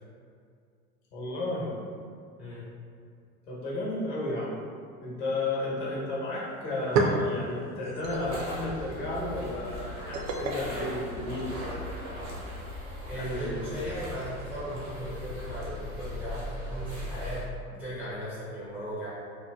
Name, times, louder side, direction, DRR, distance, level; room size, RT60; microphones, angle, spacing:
voice 1, 1.1-1.7 3.5-4.6 5.0-11.8 13.1-13.5, left 2 dB, 55° left, -5 dB, 1.0 m, -33 dB
sound 1, 6.2-6.3 6.6-11.8, right 3 dB, 65° right, 0.5 m, -33 dB
sound 2, 8.0-17.4, left 1 dB, 85° right, 0.9 m, -39 dB
voice 2, 13.1-17.4 17.8-19.1, equal, 5° right, -11 dB, 0.3 m, -37 dB
2.8 x 2.1 x 2.2 m, 2.3 s
hypercardioid pair, 85°, 43 cm